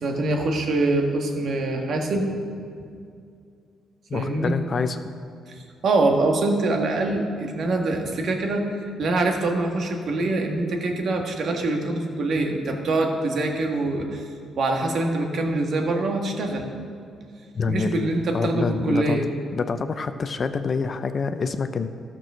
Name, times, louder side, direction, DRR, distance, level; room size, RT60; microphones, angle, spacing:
voice 1, 0.0-2.3 4.1-4.5 5.5-8.7 9.0-14.2 14.6-16.7 17.7-19.2, right 2 dB, 60° right, 2 dB, 1.6 m, -24 dB
voice 2, 4.1-5.0 17.5-19.2 19.5-21.9, left 5 dB, 40° left, 9 dB, 0.6 m, -26 dB
13.5 x 6.2 x 6.2 m, 2.4 s
cardioid pair, 90°, 0 cm